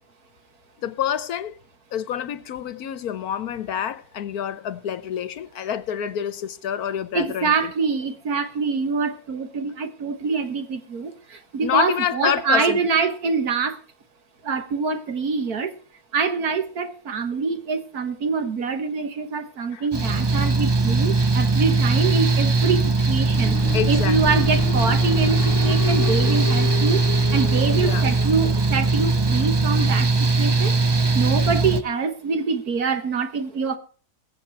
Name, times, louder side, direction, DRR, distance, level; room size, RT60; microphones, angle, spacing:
voice 1, 0.8-1.6 1.9-7.7 11.6-12.8 19.7-19.9 23.7-24.4 27.8-28.0, left 9 dB, 70° left, 1.3 m, -27 dB
voice 2, 7.1-11.1 11.5-13.8 14.4-15.7 16.1-23.6 23.9-27.0 27.3-30.1 30.4-30.7 31.1-33.8, right 5 dB, 70° right, 1.9 m, -25 dB
Mechanical fan, 19.9-31.8, right 3 dB, 35° right, 0.4 m, -20 dB
sound 1, 23.3-29.9, left 9 dB, 55° left, 1.1 m, -33 dB
21.5 x 7.8 x 4.6 m
omnidirectional pair, 1.7 m